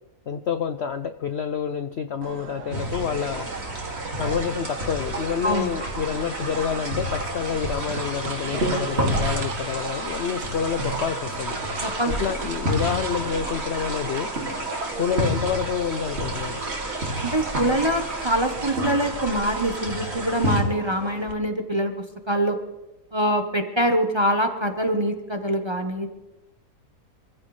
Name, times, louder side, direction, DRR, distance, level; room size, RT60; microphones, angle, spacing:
voice 1, 0.3-3.5 4.2-11.6 12.1-14.3 14.9-16.6, left 7 dB, 60° left, 9 dB, 0.7 m, -28 dB
sound 1, 2.2-21.3, right 6 dB, 65° right, 1.5 m, -39 dB
sound 2, 2.7-20.6, right 1 dB, 40° right, 2.6 m, -29 dB
voice 2, 11.8-12.1 17.2-21.9 22.3-22.6 23.1-26.1, equal, 20° right, 5 dB, 0.8 m, -24 dB
25.5 x 15.0 x 3.2 m, 1.0 s
omnidirectional pair, 1.7 m